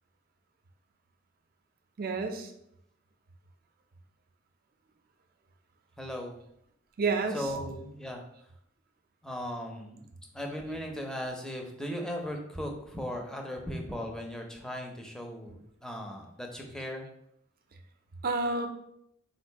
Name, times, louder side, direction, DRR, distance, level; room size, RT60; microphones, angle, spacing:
voice 1, 2.0-2.5 7.0-7.5 18.2-18.7, right 3 dB, 45° right, 5 dB, 0.5 m, -29 dB
voice 2, 6.0-6.4 7.3-8.2 9.2-10.0 10.3-17.0, equal, 5° left, 1 dB, 0.5 m, -37 dB
3.8 x 2.5 x 4.5 m, 0.76 s
head